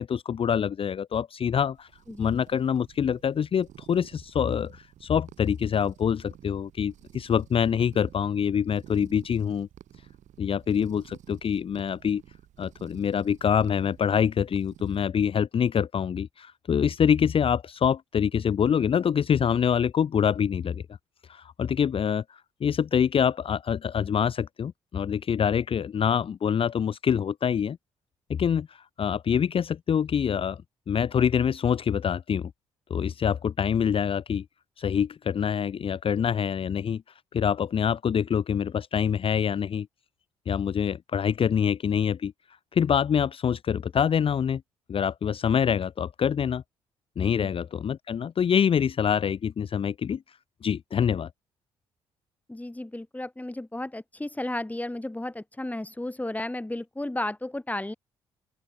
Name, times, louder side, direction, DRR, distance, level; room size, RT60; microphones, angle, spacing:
voice 1, 0.0-1.9 2.2-9.7 10.4-12.2 12.6-20.8 21.3-27.8 28.3-30.6 30.9-32.5 32.9-34.4 34.8-37.0 37.3-39.9 40.5-42.3 42.7-44.6 44.9-46.6 47.2-51.3, left 8 dB, 40° left, 0.8 m, -25 dB
sound 1, 1.7-15.0, right 11 dB, 60° right, 7.5 m, -52 dB
voice 2, 52.5-57.9, left 1 dB, 10° left, 4.1 m, -33 dB
open air
figure-of-eight pair, 45°, 14 cm